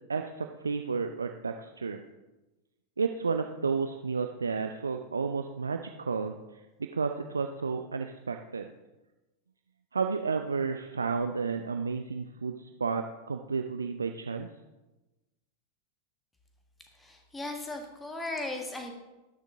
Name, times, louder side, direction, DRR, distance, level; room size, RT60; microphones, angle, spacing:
voice 1, 0.1-2.0 3.0-6.3 6.8-8.7 9.9-14.5, right 5 dB, 75° right, 6 dB, 0.4 m, -32 dB
voice 2, 16.9-18.9, left 2 dB, 10° left, 3 dB, 1.5 m, -37 dB
12.5 x 6.5 x 3.7 m, 1.1 s
figure-of-eight pair, 90°, 0 cm